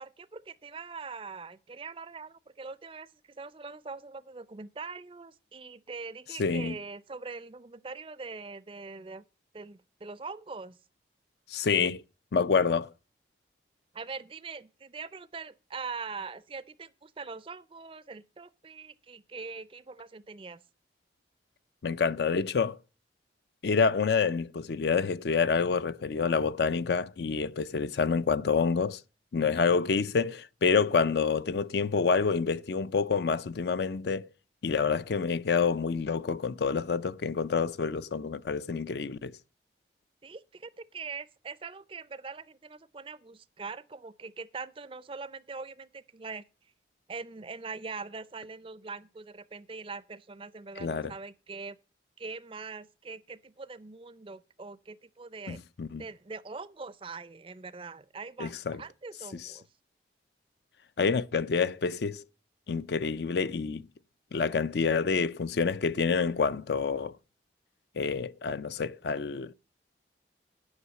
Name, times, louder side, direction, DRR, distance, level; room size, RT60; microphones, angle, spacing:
voice 1, 0.0-9.2 9.5-10.8 13.9-20.6 40.2-46.4 47.1-51.8 52.2-55.6 56.0-59.7, right 4 dB, 30° right, 0.4 m, -42 dB
voice 2, 6.4-6.8 11.5-12.0 12.3-12.9 21.8-22.8 23.6-29.0 29.3-34.3 34.6-39.3 50.8-51.1 55.5-56.0 58.4-58.8 59.3-59.4 61.0-62.2 62.7-63.9 64.3-67.1 68.0-69.5, left 5 dB, 65° left, 0.4 m, -27 dB
9.7 x 5.6 x 7.5 m
head